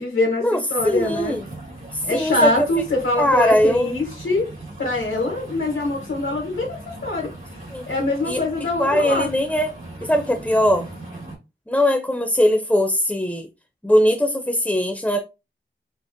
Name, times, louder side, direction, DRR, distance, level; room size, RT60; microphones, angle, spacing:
voice 1, 0.0-1.4 2.0-7.3 7.9-9.3, left 2 dB, 75° left, 1.2 m, -24 dB
voice 2, 0.8-1.4 2.1-2.5 3.2-3.9 7.7-7.9 8.3-8.4 8.8-9.7 10.0-10.9 11.7-13.5 13.8-15.2, equal, 5° left, 0.5 m, -20 dB
sound 1, 0.8-11.4, right 2 dB, 80° right, 1.7 m, -39 dB
5.0 x 2.1 x 2.6 m
wide cardioid pair, 50°, 21 cm